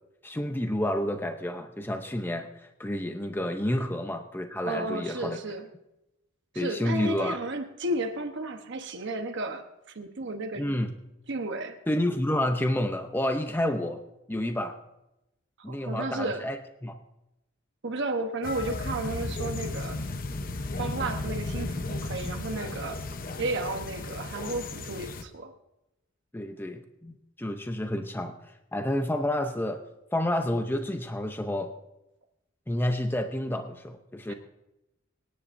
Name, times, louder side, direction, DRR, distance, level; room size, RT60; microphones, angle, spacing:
voice 1, 0.2-5.4 6.6-7.4 10.6-10.9 11.9-14.0 14.3-14.8 15.6-16.6 16.8-16.9 26.3-28.4 28.7-29.8 30.1-31.7 32.7-34.3, left 1 dB, 10° left, 6 dB, 0.7 m, -29 dB
voice 2, 4.6-5.7 6.5-10.7 11.3-11.8 15.6-16.5 17.8-20.0 20.6-23.1 23.4-25.5 34.3-34.4, right 2 dB, 60° right, 5 dB, 1.0 m, -33 dB
sound 1, 18.4-25.2, left 2 dB, 45° left, 0.8 m, -34 dB
25.5 x 10.0 x 2.6 m, 0.91 s
head